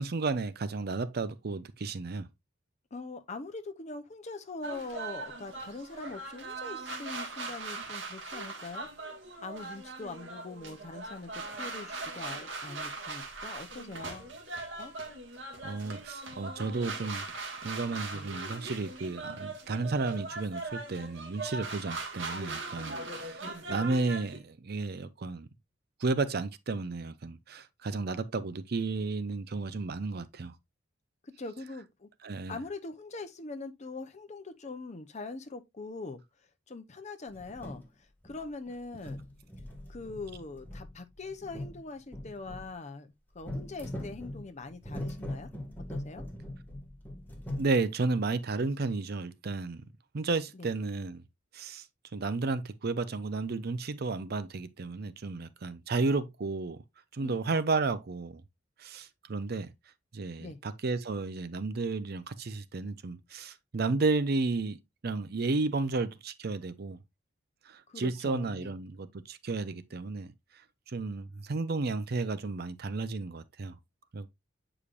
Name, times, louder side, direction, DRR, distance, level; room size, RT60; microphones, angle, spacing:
voice 1, 0.0-2.3 15.6-17.3 17.6-23.4 23.7-25.5 26.0-30.5 32.2-32.6 47.6-49.8 50.1-51.2 51.5-51.8 52.1-56.8 57.1-58.4 58.8-59.7 60.1-64.8 65.0-67.0 67.7-70.3 70.9-73.8 74.1-74.3, right 3 dB, 55° right, 0.6 m, -32 dB
voice 2, 2.9-8.9 9.4-14.3 14.8-14.9 31.4-32.1 32.5-36.2 36.7-37.8 38.2-39.2 39.9-45.5 45.9-46.2 50.5-50.7 57.2-57.6 60.4-60.6 67.9-68.7, left 3 dB, 35° left, 0.7 m, -42 dB
sound 1, 4.6-24.4, right 3 dB, 75° right, 1.7 m, -40 dB
sound 2, 37.3-37.9 38.2-38.7 39.0-42.7 43.4-47.7, left 1 dB, 10° left, 1.7 m, -41 dB
8.4 x 5.0 x 2.4 m
head